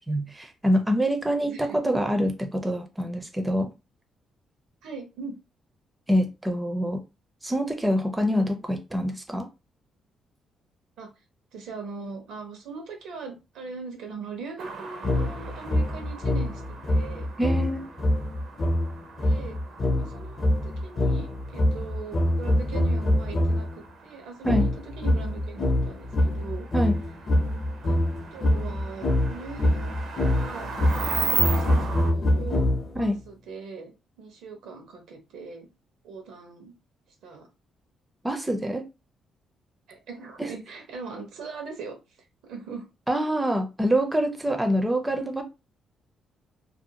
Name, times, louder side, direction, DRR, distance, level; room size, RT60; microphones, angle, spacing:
voice 1, 0.0-3.7 6.1-7.0 7.4-9.5 17.4-17.8 24.4-24.7 26.7-27.0 33.0-33.2 38.2-38.8 40.4-40.5 43.1-45.4, equal, 10° right, 0.4 m, -25 dB
voice 2, 1.4-1.8 4.8-5.4 11.0-11.1 11.5-17.3 19.2-19.5 19.9-26.7 27.8-28.0 28.3-30.7 31.0-35.7 36.0-36.7 37.1-37.5 39.9-41.9 42.4-42.8, right 4 dB, 85° right, 0.8 m, -40 dB
sound 1, 14.6-32.1, right 4 dB, 60° right, 0.5 m, -37 dB
sound 2, 15.0-23.8 24.4-33.1, left 1 dB, 40° left, 0.6 m, -25 dB
2.5 x 2.2 x 2.8 m
cardioid pair, 115°, 0 cm